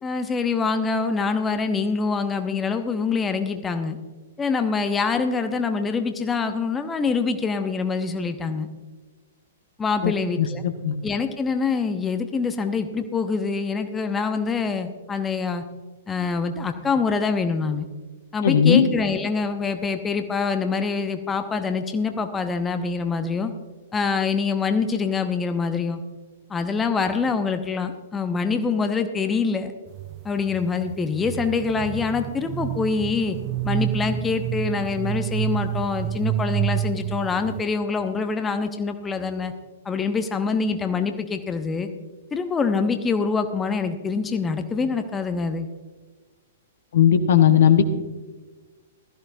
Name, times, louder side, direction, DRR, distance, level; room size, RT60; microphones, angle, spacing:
voice 1, 0.0-4.0 4.4-8.7 9.8-10.6 11.0-15.6 16.1-17.9 18.3-23.5 23.9-26.0 26.5-29.7 30.2-33.4 33.6-39.5 39.8-41.9 42.3-45.7, left 5 dB, 15° left, 7 dB, 0.8 m, -25 dB
voice 2, 10.4-10.9 18.4-18.9 46.9-47.8, left 9 dB, 55° left, 9 dB, 0.9 m, -17 dB
sound 1, 29.9-37.6, right 13 dB, 30° right, 0.4 m, -29 dB
16.0 x 13.5 x 2.6 m, 1.3 s
figure-of-eight pair, 110°, 0 cm